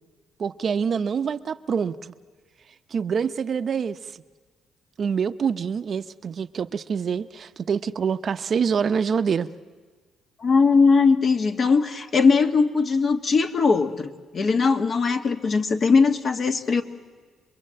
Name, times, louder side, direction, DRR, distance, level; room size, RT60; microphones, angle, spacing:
voice 1, 0.4-2.1 2.9-4.0 5.0-9.5, right 6 dB, 50° right, 11 dB, 0.8 m, -26 dB
voice 2, 10.4-16.8, left 4 dB, 50° left, 7 dB, 1.6 m, -20 dB
26.5 x 22.0 x 7.7 m, 1.5 s
cardioid pair, 90°, 0 cm